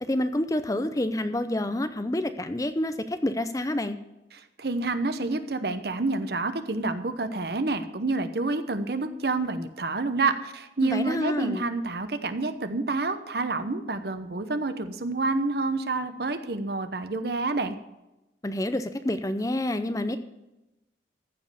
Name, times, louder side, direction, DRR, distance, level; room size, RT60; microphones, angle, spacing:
voice 1, 0.0-4.0 10.8-11.6 18.4-20.2, left 1 dB, 20° left, 10 dB, 0.6 m, -28 dB
voice 2, 4.3-17.8, right 3 dB, 55° right, 10 dB, 0.9 m, -28 dB
14.5 x 5.3 x 6.9 m, 0.95 s
head